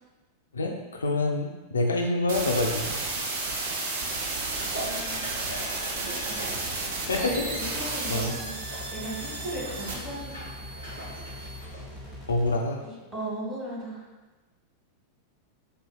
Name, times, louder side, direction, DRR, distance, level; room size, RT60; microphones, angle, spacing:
voice 1, 0.5-3.0 7.1-7.4 8.1-8.4 12.3-12.8, left 2 dB, 70° left, 2 dB, 0.3 m, -26 dB
sound 1, 2.3-11.6, right 3 dB, 55° right, 0.5 m, -33 dB
sound 2, 4.3-12.5 12.8-12.9, right 1 dB, 70° right, 1.3 m, -42 dB
voice 2, 4.8-5.8 6.8-8.6 8.9-10.5 12.8-14.0, right 1 dB, 20° right, -6 dB, 1.3 m, -37 dB
sound 3, 7.3-12.6, left 1 dB, 10° left, 0.7 m, -42 dB
4.4 x 2.6 x 2.2 m, 1.2 s
figure-of-eight pair, 90°, 0 cm